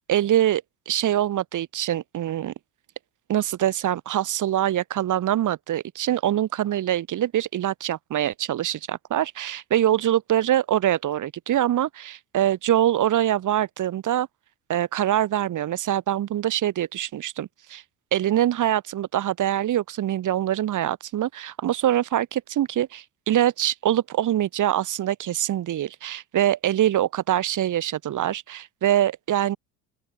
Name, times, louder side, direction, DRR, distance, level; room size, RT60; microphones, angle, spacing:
voice 1, 0.0-2.5 3.3-14.3 14.7-17.8 18.1-29.6, right 12 dB, 40° right, 1.9 m, -24 dB
open air
figure-of-eight pair, 60°, 48 cm